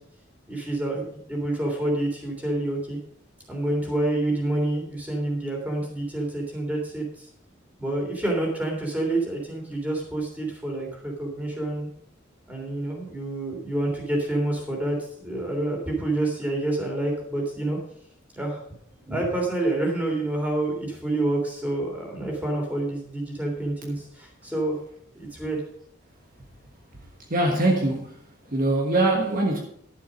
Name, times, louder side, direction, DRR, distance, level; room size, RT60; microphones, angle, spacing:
voice 1, 0.5-3.0 3.5-7.3 7.8-11.9 12.5-17.8 18.3-18.6 19.0-24.8 25.1-25.6, right 1 dB, 10° right, 3.2 m, -28 dB
voice 2, 27.3-28.2 28.5-29.6, right 2 dB, 45° right, 1.4 m, -22 dB
11.5 x 7.4 x 5.3 m
head